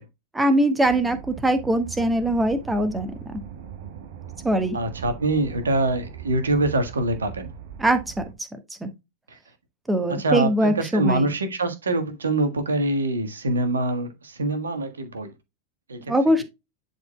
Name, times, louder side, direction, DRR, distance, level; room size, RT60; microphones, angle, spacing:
voice 1, 0.3-3.3 4.4-4.8 7.8-8.2 8.8-8.9 9.9-11.3 16.1-16.4, right 1 dB, 10° right, 1.4 m, -22 dB
sound 1, 0.8-8.3, right 9 dB, 50° right, 1.4 m, -40 dB
voice 2, 4.7-7.5 10.1-15.3 15.9-16.0, right 2 dB, 70° right, 1.5 m, -24 dB
11.0 x 4.4 x 2.2 m
figure-of-eight pair, 90°, 0 cm